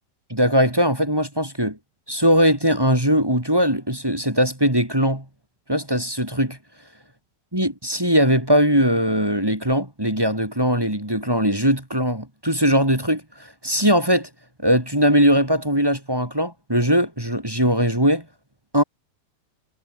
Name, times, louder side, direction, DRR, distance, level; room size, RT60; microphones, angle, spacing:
voice 1, 0.3-1.8 2.1-5.2 5.7-6.6 7.5-13.2 13.6-14.3 14.6-18.2 18.7-18.8, equal, 5° right, 2.5 m, -20 dB
omnidirectional pair, 4.6 m